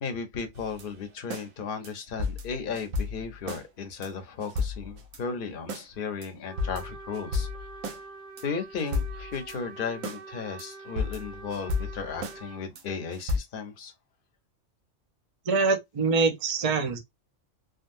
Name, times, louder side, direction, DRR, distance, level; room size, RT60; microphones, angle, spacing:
voice 1, 0.0-7.5 8.4-13.9, left 5 dB, 50° left, 0.9 m, -35 dB
sound 1, 0.5-1.5 1.8-1.9 2.2-3.6 4.0-4.1 4.4-5.2 5.7-5.9 6.2-6.3 6.6-8.0 8.4-8.5 8.8-9.6 10.0-10.2 10.6-10.7 11.0-12.4 12.8-12.9 13.1-13.4, left 3 dB, 85° right, 1.2 m, -33 dB
Trumpet, 6.4-12.6, right 4 dB, 60° right, 1.6 m, -45 dB
voice 2, 15.5-17.0, right 4 dB, 40° right, 0.5 m, -24 dB
3.7 x 2.2 x 2.6 m
omnidirectional pair, 1.3 m